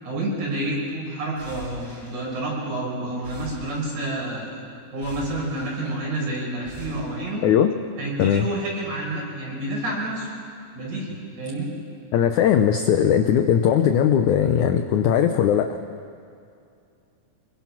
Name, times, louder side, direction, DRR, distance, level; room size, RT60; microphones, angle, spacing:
voice 1, 0.0-4.6 4.9-7.4 8.0-10.3 10.7-11.7, right 1 dB, 50° right, -3 dB, 6.9 m, -29 dB
sound 1, 1.4-2.8 3.1-4.4 4.9-6.2 6.6-7.0, left 1 dB, 25° right, 4.5 m, -43 dB
voice 2, 12.1-15.8, left 9 dB, 80° left, 7 dB, 1.7 m, -19 dB
26.0 x 22.0 x 6.1 m, 2.5 s
omnidirectional pair, 4.4 m